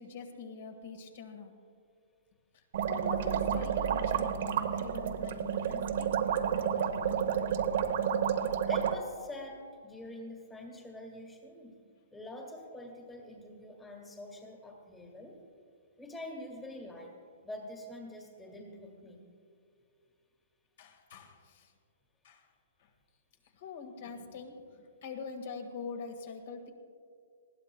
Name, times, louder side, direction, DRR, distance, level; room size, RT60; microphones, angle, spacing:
voice 1, 0.0-1.5 2.9-6.2 20.8-21.7 22.2-22.4 23.6-26.7, left 5 dB, 50° left, 4 dB, 1.7 m, -44 dB
sound 1, 2.7-8.9, right 8 dB, 55° right, 0.8 m, -30 dB
voice 2, 8.7-11.7 12.1-15.4 16.0-17.1 17.4-19.2, left 1 dB, 10° left, 2 dB, 1.6 m, -45 dB
20.0 x 15.5 x 2.3 m, 2.4 s
hypercardioid pair, 160°, 0 cm